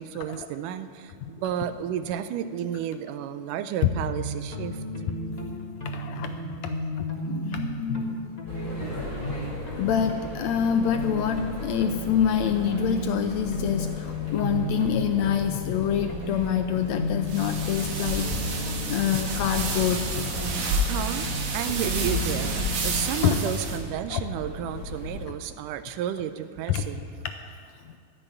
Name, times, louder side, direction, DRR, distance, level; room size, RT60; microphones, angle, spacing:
voice 1, 0.0-4.8 20.9-21.3 21.5-27.1, right 10 dB, 85° right, 11 dB, 2.2 m, -32 dB
sound 1, 3.8-23.1, equal, 25° left, 0.9 m, -35 dB
voice 2, 5.8-6.3 6.6-6.7 7.0-8.2 9.2-9.4 9.8-18.6 18.9-20.5 23.2-23.4 24.1-24.2 26.7-26.8, left 9 dB, 80° left, 7 dB, 1.7 m, -26 dB
sound 2, 8.5-25.2, left 2 dB, 5° left, 3.5 m, -38 dB
sound 3, 17.3-23.8, right 2 dB, 60° right, 2.3 m, -29 dB
14.0 x 6.9 x 9.9 m, 2.3 s
omnidirectional pair, 3.6 m